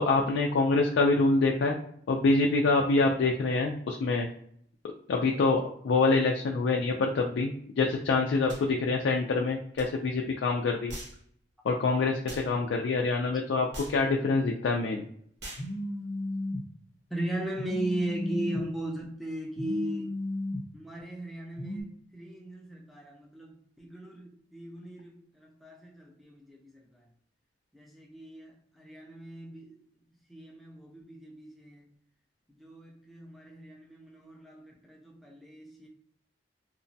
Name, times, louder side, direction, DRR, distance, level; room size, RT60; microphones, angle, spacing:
voice 1, 0.0-1.8 2.1-4.3 5.1-11.0 11.6-15.1, left 3 dB, 85° left, 0.3 m, -26 dB
sound 1, 8.5-8.7 9.8-9.9 10.9-11.2 12.3-12.5 13.7-14.0 15.4-15.7, right 1 dB, 70° right, 1.0 m, -42 dB
Telephone, 15.6-16.6 17.6-18.6 19.6-20.6 21.6-21.8, left 1 dB, 45° left, 0.6 m, -34 dB
voice 2, 17.1-20.1 20.7-27.0 27.7-29.8 30.3-31.9 32.6-35.9, right 1 dB, ahead, 0.4 m, -38 dB
2.9 x 2.1 x 2.6 m
head